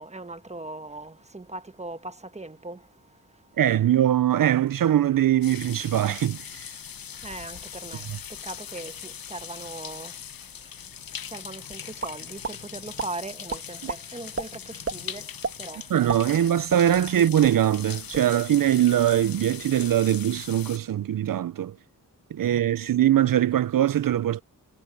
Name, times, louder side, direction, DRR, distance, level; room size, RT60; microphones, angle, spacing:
voice 1, 0.0-3.5 7.2-15.9, right 2 dB, 20° right, 1.3 m, -40 dB
voice 2, 3.6-6.7 8.1-8.2 13.8-13.9 15.9-21.8 22.3-24.4, right 11 dB, 75° right, 0.5 m, -22 dB
sound 1, 5.4-20.8, left 8 dB, 90° left, 0.9 m, -40 dB
sound 2, 12.0-12.6 13.0-13.1 13.5-14.0 14.4-14.5 14.8-15.0 15.4-15.6 15.9-17.2 17.4-17.6 17.9-18.3, right 4 dB, 40° right, 1.4 m, -31 dB
wide cardioid pair, 70°, 34 cm